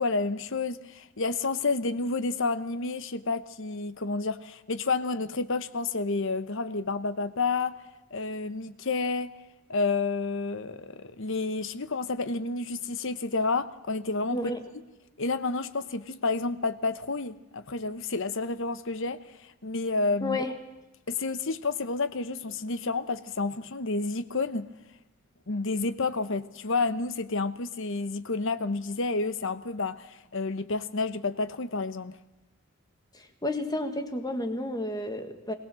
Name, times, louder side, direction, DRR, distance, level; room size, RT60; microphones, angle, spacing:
voice 1, 0.0-7.8 8.1-9.3 9.7-14.5 15.2-20.4 21.1-24.7 25.5-32.2, left 3 dB, 60° left, 13 dB, 1.0 m, -30 dB
voice 2, 14.3-14.6 20.2-20.5 33.1-35.5, left 1 dB, 20° left, 7 dB, 1.6 m, -31 dB
22.0 x 17.5 x 7.7 m, 1.0 s
head